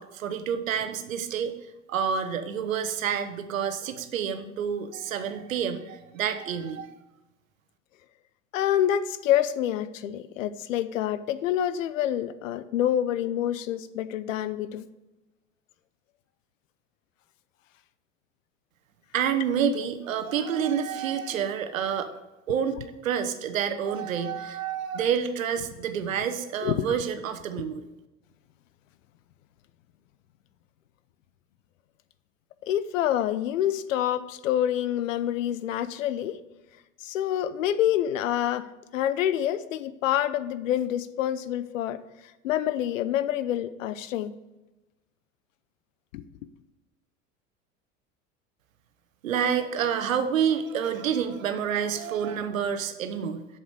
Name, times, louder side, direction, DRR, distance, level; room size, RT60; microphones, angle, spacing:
voice 1, 0.0-1.5 1.9-6.9 19.1-22.1 22.5-22.8 23.0-27.9 49.2-53.5, right 8 dB, 85° right, 9 dB, 1.1 m, -28 dB
voice 2, 8.5-14.8 26.6-27.0 32.7-36.4 37.0-38.7 38.9-42.0 42.4-44.3 46.1-46.2, left 11 dB, 80° left, 15 dB, 0.7 m, -27 dB
8.3 x 7.1 x 6.7 m, 1.0 s
hypercardioid pair, 80°, 39 cm